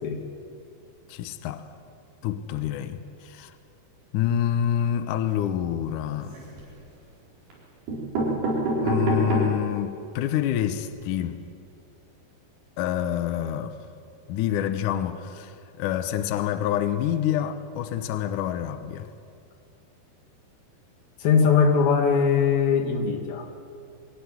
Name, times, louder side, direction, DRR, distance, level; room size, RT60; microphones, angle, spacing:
voice 1, 1.1-1.7 2.2-3.5 4.1-6.4 8.8-11.4 12.8-13.8 14.3-19.1, left 10 dB, 85° left, 1.8 m, -27 dB
sound 1, 6.1-6.8 7.5-7.6 7.9-9.7 10.2-10.3 10.5-10.6 10.9-11.0, right 2 dB, 65° right, 6.3 m, -27 dB
voice 2, 21.2-23.5, left 6 dB, 60° left, 3.7 m, -21 dB
23.0 x 15.5 x 9.7 m
omnidirectional pair, 5.0 m